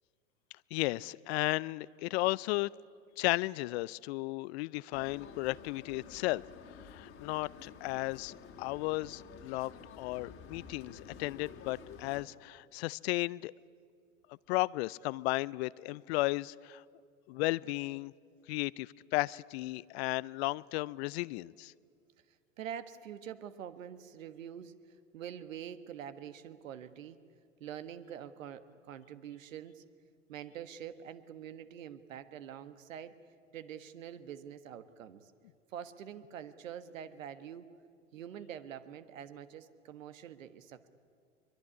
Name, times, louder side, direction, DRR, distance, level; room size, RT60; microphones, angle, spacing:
voice 1, 0.7-2.7 3.2-6.4 6.8-13.5 14.5-16.8 17.3-18.1 18.5-21.7, left 21 dB, 55° left, 22 dB, 0.6 m, -34 dB
sound 1, 4.9-12.2, left 6 dB, 35° left, 2.3 m, -51 dB
voice 2, 22.6-27.2 27.6-29.8 30.3-33.2 33.5-35.3 35.7-37.7 38.1-40.9, right 9 dB, 75° right, 11 dB, 1.5 m, -45 dB
23.0 x 22.5 x 9.8 m, 2.3 s
hypercardioid pair, 95°, 39 cm